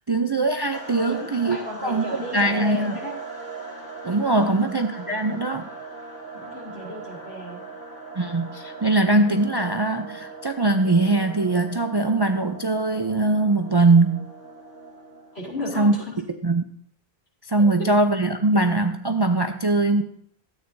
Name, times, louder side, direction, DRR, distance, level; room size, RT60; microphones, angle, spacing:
voice 1, 0.0-3.0 4.0-5.7 8.2-14.3 15.8-16.0 16.4-16.7 17.4-20.0, right 2 dB, 35° right, 5 dB, 0.4 m, -21 dB
sound 1, 0.7-15.5, right 4 dB, 20° left, 2.3 m, -39 dB
voice 2, 1.0-3.1 4.3-4.5 6.3-7.6 15.3-16.0 17.6-17.7, left 1 dB, 85° left, -3 dB, 3.0 m, -34 dB
13.0 x 8.9 x 2.7 m, 0.64 s
omnidirectional pair, 1.0 m